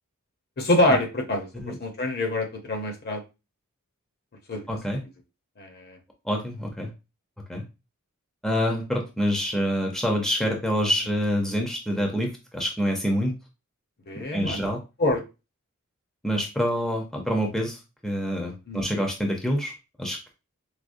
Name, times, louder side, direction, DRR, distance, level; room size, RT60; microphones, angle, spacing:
voice 1, 0.6-3.2 4.5-4.6 5.6-6.0 14.1-14.6 15.0-15.2 18.7-18.8, left 1 dB, 50° left, 3 dB, 0.8 m, -25 dB
voice 2, 4.7-5.0 6.2-6.9 7.5-7.6 8.4-13.3 14.1-14.8 16.2-20.3, equal, ahead, 1 dB, 0.6 m, -27 dB
4.8 x 2.0 x 2.5 m, 0.27 s
head